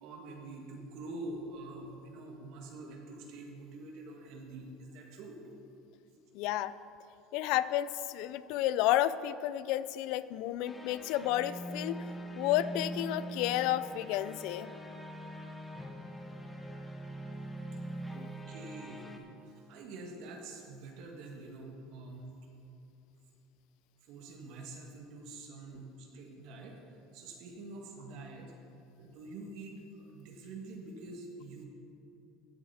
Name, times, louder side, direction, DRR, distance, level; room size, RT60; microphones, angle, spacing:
voice 1, 0.0-5.4 18.1-19.1 19.4-22.3 24.0-26.8 27.1-28.5 28.9-31.6, right 2 dB, 65° right, 1 dB, 1.5 m, -46 dB
voice 2, 6.3-6.7 7.3-12.0 12.4-14.7 18.1-18.3, left 13 dB, 70° left, 16 dB, 0.3 m, -31 dB
sound 1, 10.7-19.2, right 1 dB, 5° left, 1.0 m, -43 dB
15.0 x 7.2 x 4.2 m, 2.8 s
supercardioid pair, 125°, 0 cm